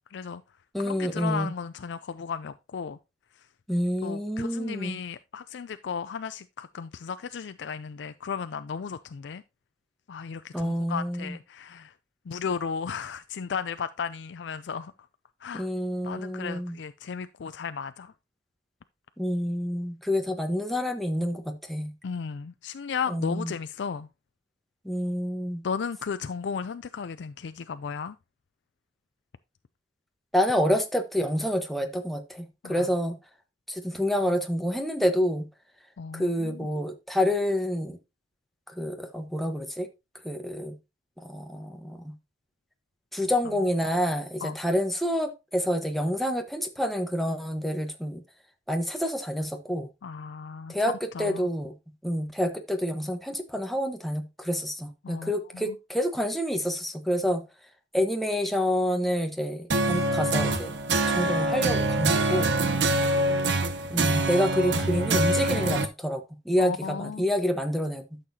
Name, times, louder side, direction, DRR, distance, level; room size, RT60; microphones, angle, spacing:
voice 1, 0.1-0.4 0.8-3.0 4.0-9.4 10.1-11.9 12.3-14.9 15.4-15.7 16.0-18.1 22.0-24.1 25.6-28.2 32.6-32.9 36.0-36.7 44.4-44.6 50.0-50.7 51.1-51.5 55.0-55.8 62.6-63.5 66.6-67.2, left 6 dB, 75° left, 0.4 m, -35 dB
voice 2, 0.7-1.5 3.7-5.0 10.5-11.4 15.5-16.8 19.2-21.9 23.1-23.5 24.8-25.6 30.3-33.2 33.7-35.4 36.1-38.0 38.8-39.9 40.2-40.7 41.2-42.1 43.1-48.2 48.7-49.9 50.7-50.9 51.2-51.7 52.0-57.4 57.9-60.8 61.1-62.5 63.9-68.0, equal, ahead, 1.2 m, -28 dB
sound 1, 59.7-65.8, right 2 dB, 75° right, 1.0 m, -25 dB
12.5 x 6.6 x 2.8 m
head